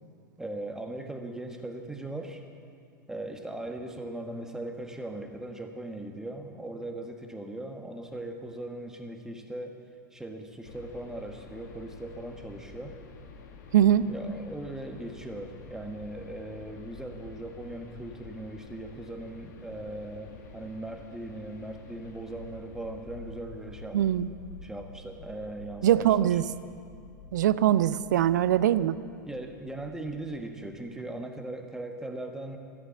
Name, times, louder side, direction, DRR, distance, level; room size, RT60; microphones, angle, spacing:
voice 1, 0.4-2.4 3.1-9.8 10.1-13.0 14.1-24.0 24.6-26.4 29.2-32.6, right 1 dB, 5° right, 4 dB, 1.3 m, -39 dB
sound 1, 10.6-30.5, left 3 dB, 55° left, 1.3 m, -49 dB
voice 2, 13.7-14.1 23.9-24.3 25.8-26.4 27.3-29.0, right 11 dB, 60° right, 16 dB, 0.5 m, -22 dB
14.0 x 8.6 x 8.2 m, 2.3 s
figure-of-eight pair, 85°, 11 cm